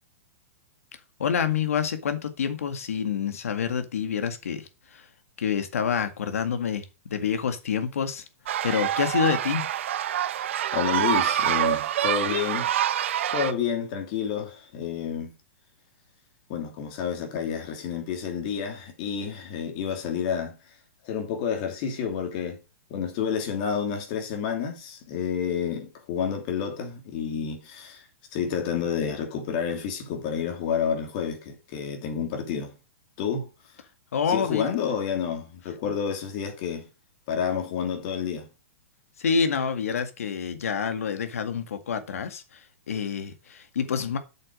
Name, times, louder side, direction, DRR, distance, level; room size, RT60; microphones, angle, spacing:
voice 1, 1.2-5.1 5.4-8.2 8.6-9.6 34.1-34.7 39.2-42.6 42.9-44.2, left 7 dB, 85° left, 2.0 m, -27 dB
sound 1, 8.5-13.5, right 11 dB, 60° right, 0.8 m, -26 dB
voice 2, 10.7-15.3 16.5-20.6 21.0-22.6 22.9-28.0 28.3-32.7 33.2-33.5 34.3-36.9 37.3-38.5, left 7 dB, 35° left, 2.8 m, -29 dB
8.1 x 6.6 x 4.9 m
hypercardioid pair, 165°, 7 cm